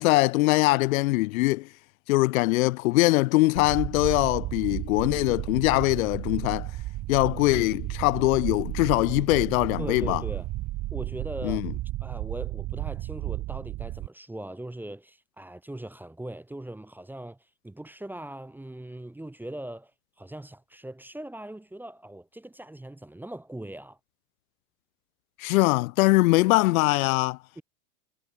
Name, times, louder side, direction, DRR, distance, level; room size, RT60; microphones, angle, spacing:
voice 1, 0.0-1.7 2.1-6.7 7.1-10.2 11.4-11.7 25.4-27.4, left 21 dB, 55° left, 1.1 m, -22 dB
sound 1, 3.6-14.1, right 18 dB, 35° right, 1.9 m, -33 dB
voice 2, 9.8-10.5 10.9-11.6 12.0-17.4 17.6-19.9 20.2-24.0 27.6-27.7, right 1 dB, 5° right, 1.2 m, -40 dB
hypercardioid pair, 110°, 49 cm